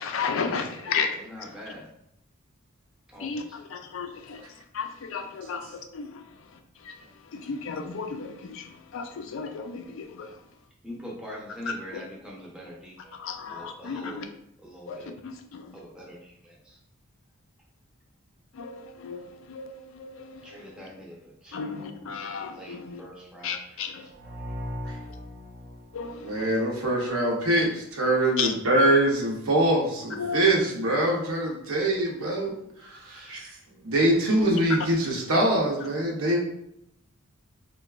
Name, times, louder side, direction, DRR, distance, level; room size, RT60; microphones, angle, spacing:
voice 1, 0.0-1.1 3.2-3.4 3.7-4.4 4.7-5.6 5.9-6.1 7.5-8.6 8.9-10.3 13.2-14.2 14.9-15.0 15.5-15.6 18.6-19.2 19.5-19.7 20.0-20.2 21.5-23.0 23.4-24.0 25.9-26.5 28.4-28.5 30.2-30.4, left 5 dB, 65° left, 5 dB, 0.4 m, -33 dB
voice 2, 0.7-1.8 3.1-3.6 10.8-14.3 14.6-15.1 15.7-16.8 20.4-21.2 21.4-22.1 22.5-24.4 33.1-33.5, equal, 5° right, -4 dB, 0.6 m, -44 dB
sound 1, 24.1-26.9, left 1 dB, 50° right, 0.6 m, -39 dB
voice 3, 26.2-32.6 33.0-33.5 33.8-36.4, right 1 dB, 85° right, 0 dB, 0.7 m, -24 dB
3.9 x 2.2 x 2.3 m, 0.77 s
head